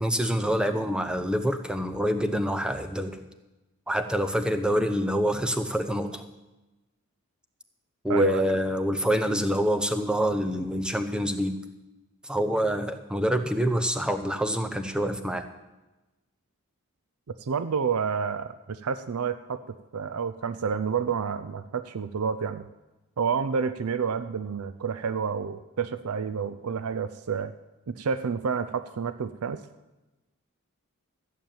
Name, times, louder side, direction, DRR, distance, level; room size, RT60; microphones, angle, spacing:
voice 1, 0.0-3.2 3.9-6.2 8.0-11.6 12.2-15.5, equal, 5° right, 8 dB, 0.8 m, -26 dB
voice 2, 8.1-8.6 17.4-19.6 19.9-22.7 23.2-27.5 27.9-29.6, right 6 dB, 85° right, 11 dB, 0.5 m, -29 dB
14.5 x 7.2 x 8.9 m, 1.1 s
head